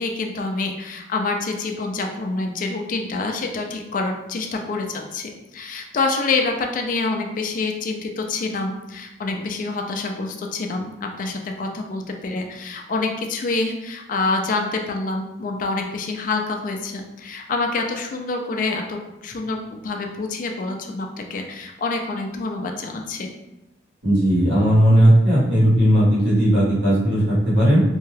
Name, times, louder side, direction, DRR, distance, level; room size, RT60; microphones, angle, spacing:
voice 1, 0.0-23.3, left 3 dB, 45° left, 3 dB, 0.3 m, -27 dB
voice 2, 24.0-27.8, equal, 80° right, -7 dB, 1.4 m, -16 dB
2.7 x 2.3 x 3.2 m, 0.94 s
head